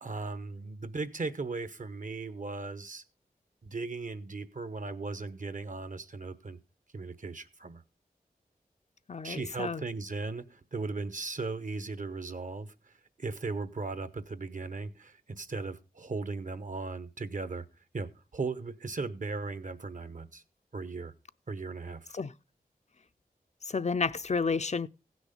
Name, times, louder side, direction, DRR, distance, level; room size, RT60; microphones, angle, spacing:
voice 1, 0.0-3.0 3.6-6.6 6.9-7.8 9.2-12.9 13.2-17.6 17.9-20.4 20.7-21.1 21.5-22.2, right 3 dB, 55° right, 1.0 m, -37 dB
voice 2, 9.1-9.8 22.1-22.3 23.7-24.9, left 4 dB, 45° left, 0.5 m, -31 dB
16.0 x 6.3 x 5.1 m
wide cardioid pair, 60°, 16 cm